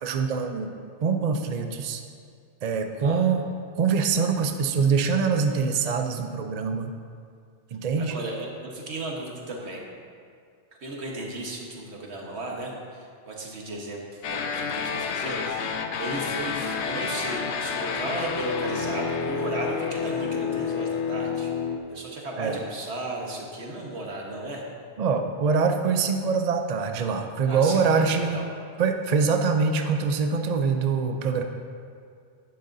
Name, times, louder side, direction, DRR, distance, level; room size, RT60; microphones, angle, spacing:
voice 1, 0.0-0.7 1.0-2.0 2.6-3.4 3.8-6.9 7.7-8.1 22.4-22.6 25.0-28.4 28.8-31.4, right 5 dB, 50° right, 5 dB, 0.5 m, -24 dB
voice 2, 8.0-9.8 10.8-21.5 21.9-24.6 27.5-28.4, right 2 dB, 75° right, -1 dB, 1.6 m, -35 dB
sound 1, 14.2-21.8, left 6 dB, 80° left, 0.9 m, -29 dB
11.5 x 9.7 x 2.7 m, 2.2 s
omnidirectional pair, 1.1 m